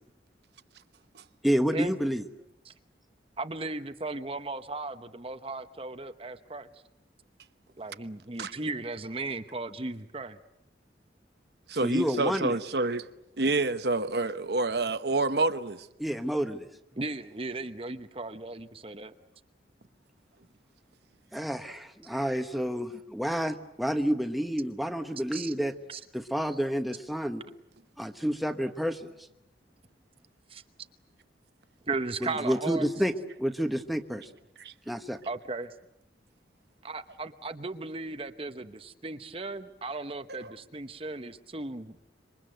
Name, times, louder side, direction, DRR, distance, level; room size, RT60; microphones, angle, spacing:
voice 1, 1.4-2.2 11.8-12.5 16.0-16.6 21.3-25.7 26.1-27.4 28.0-29.1 32.2-33.1 33.4-34.3 34.9-35.2, equal, ahead, 1.2 m, -29 dB
voice 2, 3.4-6.8 7.8-10.4 17.0-19.1 25.3-25.5 25.9-26.0 30.5-30.6 31.9-32.9 35.2-35.7 36.8-42.0, right 3 dB, 30° right, 0.9 m, -36 dB
voice 3, 11.7-13.1 13.4-15.9 34.6-34.7 40.3-40.5, right 3 dB, 65° right, 1.0 m, -28 dB
27.0 x 24.5 x 7.9 m
head